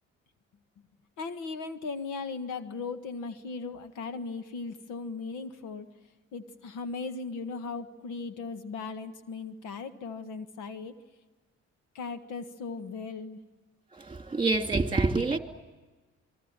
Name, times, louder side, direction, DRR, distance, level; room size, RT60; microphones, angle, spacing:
voice 1, 1.2-5.9 6.3-10.9 11.9-13.4, left 4 dB, 85° left, 1.7 m, -37 dB
voice 2, 13.9-15.4, right 3 dB, 15° right, 2.8 m, -27 dB
27.0 x 23.0 x 8.9 m
cardioid pair, 90°, 30 cm